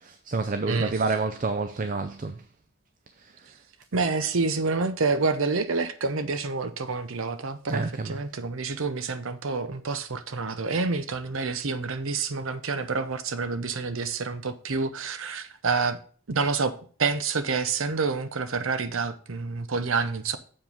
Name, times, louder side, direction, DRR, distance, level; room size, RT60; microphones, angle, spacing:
voice 1, 0.0-2.4 3.2-3.3 7.7-8.2, right 3 dB, 40° right, 0.5 m, -28 dB
voice 2, 0.7-1.0 3.9-16.0 16.3-20.4, right 4 dB, 75° right, 0.8 m, -28 dB
7.5 x 5.0 x 5.3 m
head